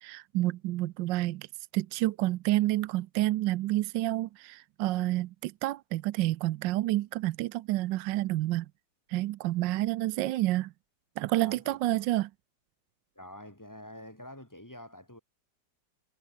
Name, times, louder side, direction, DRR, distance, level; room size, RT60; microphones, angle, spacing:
voice 1, 0.0-1.5 1.7-8.7 9.1-10.7 11.2-12.3, right 16 dB, 80° right, 1.3 m, -29 dB
voice 2, 11.4-11.9 13.1-15.2, left 1 dB, 10° left, 3.3 m, -47 dB
omnidirectional pair, 2.0 m